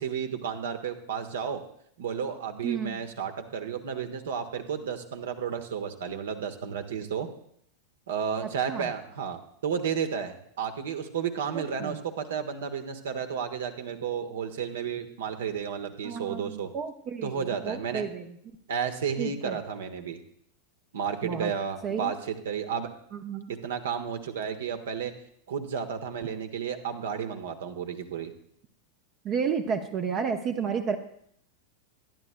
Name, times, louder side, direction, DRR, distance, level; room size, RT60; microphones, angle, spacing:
voice 1, 0.0-1.6 2.0-7.3 8.1-16.7 17.2-18.1 18.7-20.2 20.9-22.9 23.5-25.1 25.5-28.3, right 7 dB, 60° right, 7 dB, 1.3 m, -32 dB
voice 2, 2.6-3.0 8.7-8.9 11.5-12.0 16.0-18.3 19.2-19.6 21.2-21.5 21.8-22.1 23.1-23.4 29.2-31.0, right 6 dB, 35° right, 5 dB, 0.9 m, -32 dB
23.0 x 11.0 x 2.2 m, 0.69 s
figure-of-eight pair, 90°, 0 cm